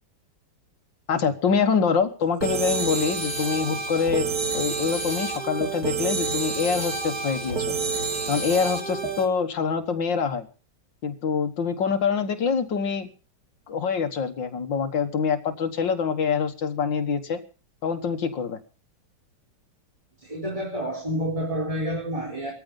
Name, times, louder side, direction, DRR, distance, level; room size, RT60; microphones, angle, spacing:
voice 1, 1.1-4.3 4.5-7.8 8.3-10.5 11.0-13.1 13.7-17.4 17.8-18.6, left 6 dB, 80° left, 6 dB, 2.1 m, -25 dB
sound 1, 2.4-9.3, right 4 dB, 55° right, 2.9 m, -29 dB
voice 2, 20.2-22.5, equal, 15° right, -2 dB, 4.5 m, -29 dB
18.5 x 14.5 x 5.4 m, 0.36 s
omnidirectional pair, 2.0 m